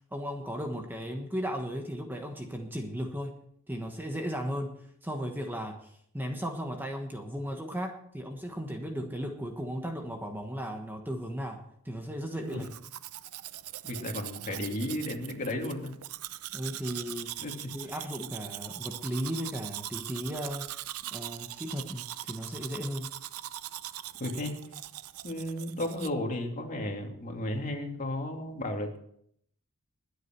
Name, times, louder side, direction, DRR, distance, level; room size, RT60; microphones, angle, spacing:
voice 1, 0.1-3.4 3.7-4.7 5.0-12.7 16.5-20.8 21.1-23.1, equal, 10° right, 3 dB, 1.3 m, -36 dB
Domestic sounds home sounds, 12.5-26.1, right 13 dB, 85° right, 0.5 m, -41 dB
voice 2, 13.8-15.9 17.4-17.7 24.2-24.6 25.2-29.0, left 1 dB, 40° left, 2 dB, 2.7 m, -34 dB
21.5 x 8.4 x 4.6 m, 0.68 s
head